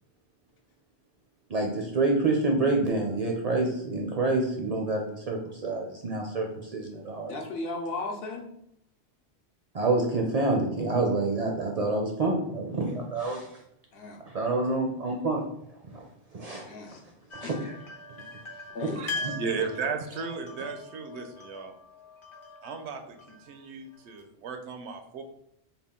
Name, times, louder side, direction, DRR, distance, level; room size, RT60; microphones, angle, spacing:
voice 1, 1.5-7.3 9.7-13.5 14.3-15.4 15.9-16.0 16.3-16.6 17.4-17.7 19.2-19.3, right 2 dB, 50° right, 0 dB, 0.5 m, -27 dB
voice 2, 7.3-8.5 13.9-14.2 16.6-17.0 17.3-17.6 18.7-19.1 21.1-21.2, left 2 dB, 65° left, 2 dB, 0.8 m, -36 dB
sound 1, 17.3-24.2, left 2 dB, 35° left, 0.5 m, -41 dB
voice 3, 18.7-21.7 22.6-25.2, right 5 dB, 85° right, 5 dB, 0.9 m, -35 dB
3.5 x 2.3 x 3.6 m, 0.77 s
omnidirectional pair, 1.1 m